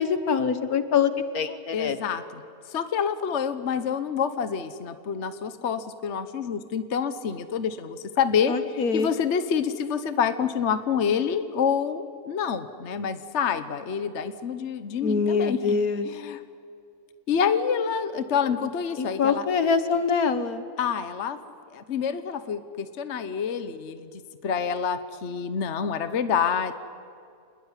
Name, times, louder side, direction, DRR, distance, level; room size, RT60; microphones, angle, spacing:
voice 1, 0.0-2.0 8.5-9.1 15.0-16.1 19.0-20.6, left 5 dB, 65° left, 11 dB, 1.8 m, -24 dB
voice 2, 1.7-2.2 2.7-15.6 16.0-16.4 17.3-19.4 20.8-21.4 21.7-24.1 24.4-26.7, left 7 dB, 50° left, 11 dB, 1.2 m, -27 dB
28.0 x 20.5 x 9.8 m, 2.4 s
omnidirectional pair, 1.7 m